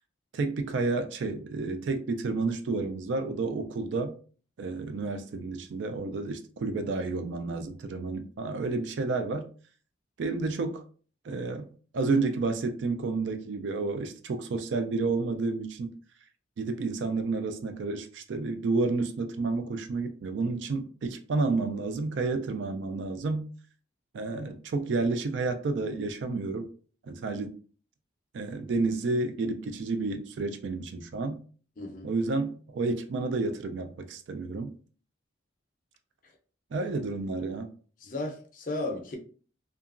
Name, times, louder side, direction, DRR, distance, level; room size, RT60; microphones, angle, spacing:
voice 1, 0.3-4.1 4.6-9.5 10.2-10.8 11.2-11.7 11.9-15.9 16.6-23.5 24.1-26.7 27.1-27.5 28.3-31.4 32.0-34.7 36.7-37.7, right 3 dB, 65° right, 0.3 m, -30 dB
voice 2, 31.8-32.1 36.2-36.3 38.0-39.2, left 2 dB, 40° left, 0.5 m, -35 dB
2.8 x 2.3 x 2.4 m
head